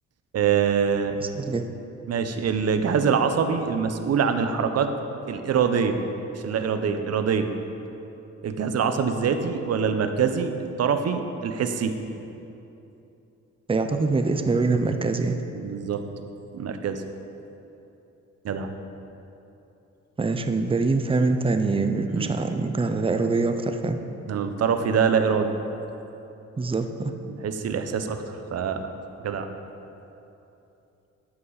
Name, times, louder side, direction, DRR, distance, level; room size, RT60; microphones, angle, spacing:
voice 1, 0.3-1.2 2.1-4.9 5.3-6.0 6.3-7.5 8.4-10.5 10.8-12.0 15.5-16.0 16.5-17.0 18.4-18.7 22.1-22.4 24.3-25.6 27.3-28.9 29.2-29.5, right 6 dB, 55° right, 8 dB, 0.9 m, -24 dB
voice 2, 1.2-1.6 13.7-15.4 20.2-24.0 26.6-27.1, right 3 dB, 20° right, 7 dB, 0.7 m, -24 dB
13.0 x 8.6 x 4.1 m, 2.9 s
cardioid pair, 90°, 30 cm